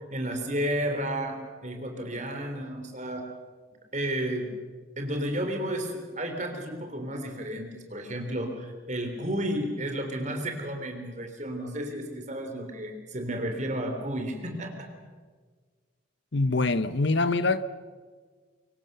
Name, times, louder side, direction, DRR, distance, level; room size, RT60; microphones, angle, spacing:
voice 1, 0.0-3.3 3.9-4.5 5.0-14.9, right 1 dB, 35° right, 5 dB, 3.5 m, -32 dB
voice 2, 16.3-17.6, left 3 dB, 60° left, 14 dB, 1.0 m, -24 dB
25.0 x 24.0 x 6.8 m, 1.5 s
head